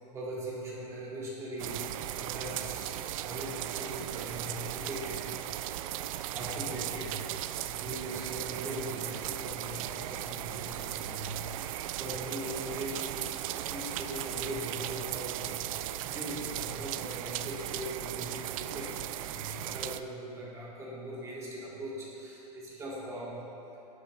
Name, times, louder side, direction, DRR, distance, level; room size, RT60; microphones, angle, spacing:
voice 1, 0.0-5.3 6.3-23.3, right 1 dB, 15° right, -7 dB, 2.2 m, -40 dB
sound 1, 1.6-20.0, right 13 dB, 60° right, 0.4 m, -37 dB
11.5 x 8.4 x 3.2 m, 2.9 s
supercardioid pair, 155°, 20 cm